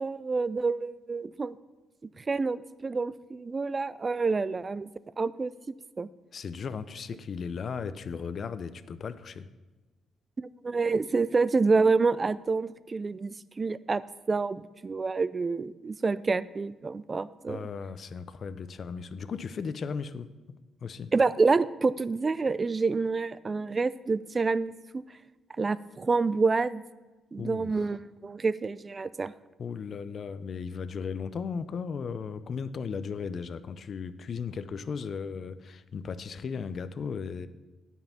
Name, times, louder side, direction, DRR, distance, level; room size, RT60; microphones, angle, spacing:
voice 1, 0.0-1.6 2.2-4.9 5.2-6.1 10.4-14.0 14.3-17.7 21.1-25.0 25.6-26.8 27.3-29.3, right 4 dB, 30° right, 17 dB, 0.3 m, -28 dB
voice 2, 6.3-9.5 17.5-20.3 20.8-21.1 27.4-27.9 29.6-37.5, left 6 dB, 50° left, 13 dB, 0.5 m, -36 dB
9.4 x 5.5 x 5.8 m, 1.2 s
cardioid pair, 90°, 0 cm